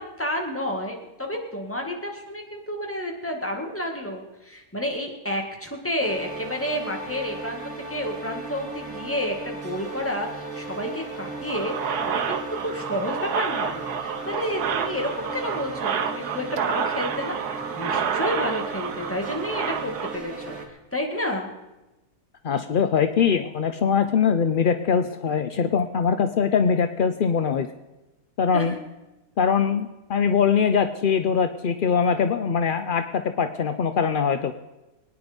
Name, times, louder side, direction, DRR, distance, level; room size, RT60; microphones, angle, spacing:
voice 1, 0.0-7.6 7.9-17.4 17.8-21.5 28.5-28.7, left 1 dB, 10° left, 1 dB, 2.0 m, -30 dB
sound 1, 6.0-20.7, right 3 dB, 65° right, 2.6 m, -37 dB
sound 2, 11.5-20.2, right 7 dB, 85° right, 1.5 m, -29 dB
voice 2, 22.4-27.7 28.4-28.7 29.4-34.5, left 6 dB, 65° left, 9 dB, 0.5 m, -22 dB
23.0 x 9.6 x 5.2 m, 1.0 s
omnidirectional pair, 1.6 m